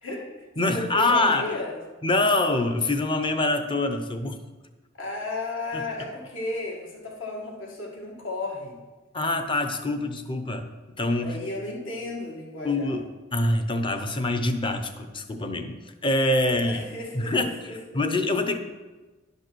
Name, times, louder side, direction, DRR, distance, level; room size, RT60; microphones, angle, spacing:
voice 1, 0.0-1.7 5.0-8.8 11.2-13.0 16.4-17.8, left 2 dB, 65° left, -1 dB, 1.9 m, -34 dB
voice 2, 0.6-1.5 2.0-4.4 5.7-5.8 9.1-10.7 11.0-11.4 12.6-13.0 13.3-16.8 17.1-18.6, left 2 dB, 25° left, 7 dB, 0.7 m, -25 dB
11.0 x 5.4 x 6.2 m, 1.2 s
head